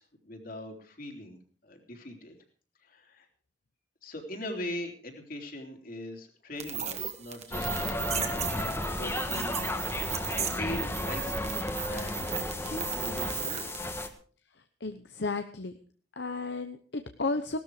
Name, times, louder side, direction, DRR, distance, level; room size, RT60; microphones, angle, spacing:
voice 1, 0.0-1.4 1.6-2.4 2.8-3.3 4.0-8.4 8.9-9.6 10.4-13.7, left 1 dB, 55° left, 3 dB, 3.5 m, -41 dB
sound 1, 6.6-13.8, right 8 dB, 40° right, 2.1 m, -36 dB
sound 2, 7.5-14.1, left 1 dB, 15° left, 1.5 m, -33 dB
voice 2, 14.8-15.7 16.2-17.6, left 3 dB, 70° left, 8 dB, 1.0 m, -33 dB
17.5 x 13.0 x 4.9 m, 0.41 s
head